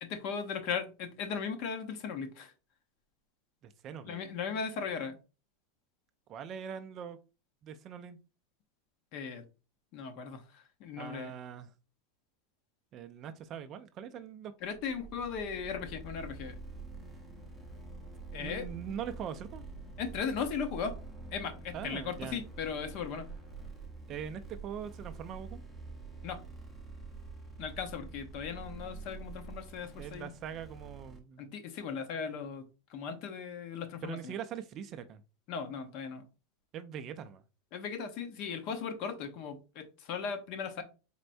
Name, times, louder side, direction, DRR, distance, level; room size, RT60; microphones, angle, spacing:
voice 1, 0.0-2.5 4.0-5.2 9.1-9.4 9.9-11.3 14.6-16.6 18.3-18.7 20.0-21.0 21.3-23.3 26.2-26.4 27.6-30.3 31.4-32.6 32.9-34.3 35.5-36.2 37.7-40.8, left 6 dB, 40° left, 8 dB, 0.7 m, -37 dB
voice 2, 3.6-4.2 6.3-7.2 7.6-8.2 11.0-11.7 12.9-14.5 18.4-19.7 21.7-22.4 24.1-25.6 30.0-31.4 34.0-35.2 36.7-37.4, right 8 dB, 30° right, 10 dB, 0.3 m, -42 dB
sound 1, 14.7-31.2, right 3 dB, 5° left, 0.7 m, -47 dB
4.3 x 3.2 x 2.5 m, 0.31 s
supercardioid pair, 170°, 0 cm